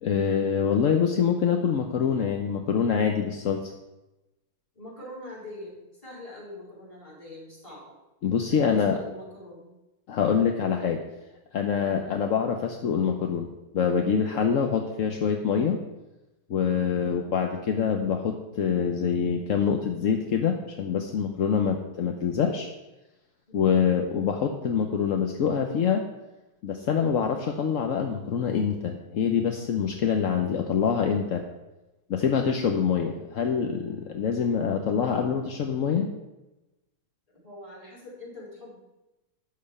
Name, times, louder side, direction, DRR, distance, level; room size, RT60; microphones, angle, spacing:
voice 1, 0.0-3.7 8.2-9.0 10.1-11.0 11.5-15.8 16.5-22.7 23.5-26.0 26.6-31.4 32.1-36.1, left 7 dB, 55° left, 4 dB, 0.9 m, -25 dB
voice 2, 4.7-7.9 8.5-9.7 16.9-17.2 23.5-23.7 37.4-38.9, left 1 dB, 15° left, -4 dB, 4.2 m, -44 dB
13.0 x 4.5 x 8.3 m, 1.0 s
omnidirectional pair, 2.2 m